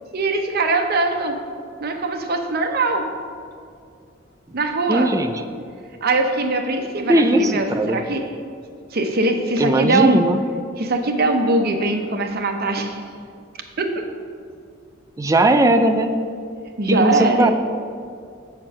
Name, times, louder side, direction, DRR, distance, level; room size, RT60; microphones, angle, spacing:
voice 1, 0.1-1.4 1.8-3.1 4.5-5.1 6.0-8.2 8.9-10.2 10.8-13.0 13.8-14.0 16.8-17.5, right 2 dB, 50° right, 5 dB, 0.7 m, -21 dB
voice 2, 4.9-5.3 7.1-8.0 9.6-10.4 15.2-16.1 16.9-17.5, right 1 dB, 15° right, 7 dB, 0.3 m, -18 dB
7.7 x 4.4 x 6.1 m, 2.3 s
head